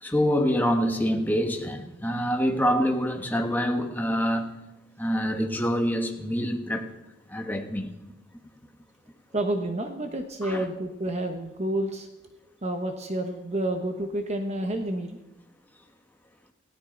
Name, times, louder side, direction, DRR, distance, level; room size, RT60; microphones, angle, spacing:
voice 1, 0.0-4.5 5.0-6.9 7.3-7.9 10.4-10.7, equal, 10° left, 4 dB, 1.4 m, -26 dB
voice 2, 9.3-12.1 12.6-15.2, right 1 dB, 30° right, 5 dB, 1.1 m, -29 dB
18.5 x 17.0 x 4.0 m, 0.95 s
head